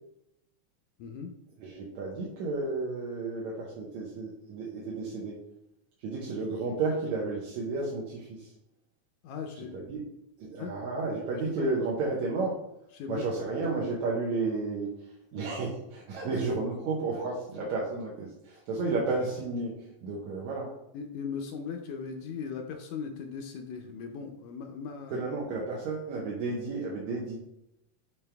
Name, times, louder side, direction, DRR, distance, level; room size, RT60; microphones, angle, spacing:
voice 1, 1.0-1.3 9.2-9.9 10.6-10.7 11.5-11.7 12.9-13.2 20.9-25.2, left 6 dB, 75° left, 3 dB, 1.9 m, -38 dB
voice 2, 1.6-5.4 6.0-8.5 9.7-10.0 10.4-12.6 13.1-14.9 15.3-19.7 20.0-20.7 25.1-27.4, right 3 dB, 70° right, -4 dB, 2.3 m, -32 dB
8.9 x 3.4 x 3.4 m, 0.82 s
omnidirectional pair, 3.6 m